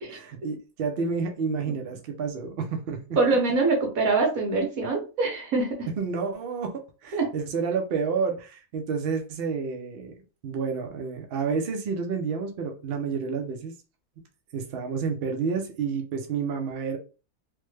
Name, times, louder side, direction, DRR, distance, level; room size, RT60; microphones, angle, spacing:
voice 1, 0.1-3.0 5.9-10.1 10.4-13.7 14.5-17.0, right 5 dB, 60° right, 0.7 m, -30 dB
voice 2, 3.2-5.9 7.1-7.3, right 3 dB, 75° right, 1.4 m, -24 dB
3.3 x 2.1 x 3.1 m
omnidirectional pair, 1.5 m